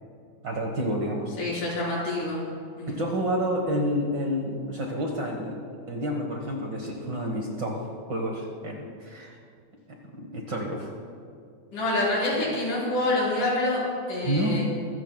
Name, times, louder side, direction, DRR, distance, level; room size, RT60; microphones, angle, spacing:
voice 1, 0.4-1.3 2.9-5.6 5.9-7.8 8.0-9.4 9.9-10.9 14.2-14.7, equal, 50° right, 0 dB, 1.4 m, -29 dB
voice 2, 1.4-2.4 2.8-3.0 11.7-14.6, left 2 dB, 80° left, -6 dB, 5.7 m, -27 dB
25.0 x 14.5 x 2.2 m, 2.3 s
omnidirectional pair, 3.6 m